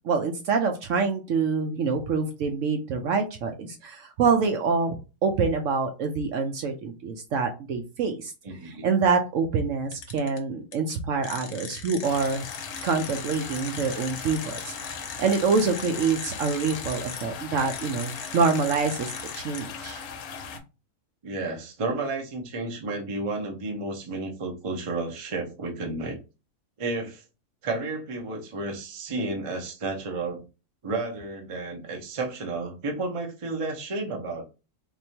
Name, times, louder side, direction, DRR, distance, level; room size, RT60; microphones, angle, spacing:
voice 1, 0.0-8.3 8.8-12.4 12.8-20.0, right 5 dB, 65° right, 0.9 m, -26 dB
voice 2, 8.4-8.9 21.2-26.2 26.8-27.2 27.6-30.4 30.8-34.4, right 3 dB, 35° right, 0.5 m, -32 dB
sound 1, 9.9-10.4 10.7-10.8 11.2-17.2 17.6-19.6, left 6 dB, 60° left, 0.9 m, -39 dB
sound 2, 12.0-20.6, left 6 dB, 80° left, 1.1 m, -39 dB
3.6 x 2.9 x 2.8 m
omnidirectional pair, 1.6 m